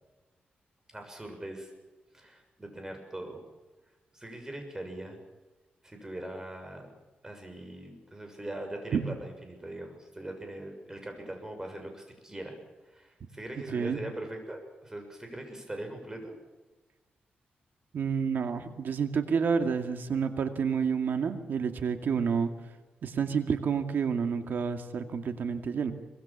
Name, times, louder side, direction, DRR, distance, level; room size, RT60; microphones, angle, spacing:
voice 1, 0.9-1.7 2.1-3.4 4.1-5.2 5.8-6.9 7.2-12.6 12.9-16.4, right 1 dB, 15° right, 4 dB, 6.8 m, -41 dB
voice 2, 17.9-22.5 23.0-25.9, right 6 dB, 75° right, 6 dB, 2.3 m, -29 dB
24.0 x 22.0 x 7.4 m, 1.2 s
wide cardioid pair, 100°, 3 cm